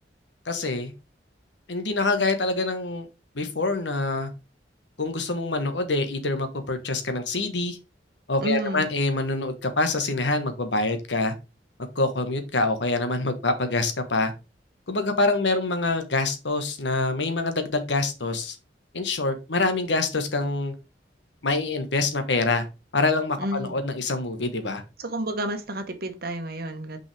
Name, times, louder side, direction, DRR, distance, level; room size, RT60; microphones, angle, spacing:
voice 1, 0.4-0.9 1.7-3.1 3.3-4.3 5.0-7.8 8.3-11.3 11.9-14.3 14.9-18.5 18.9-20.7 21.4-22.6 22.9-24.8, left 2 dB, 75° left, 1.4 m, -25 dB
voice 2, 8.4-8.9 23.4-23.8 25.0-27.0, right 1 dB, 55° right, 1.2 m, -30 dB
6.0 x 5.4 x 3.4 m
head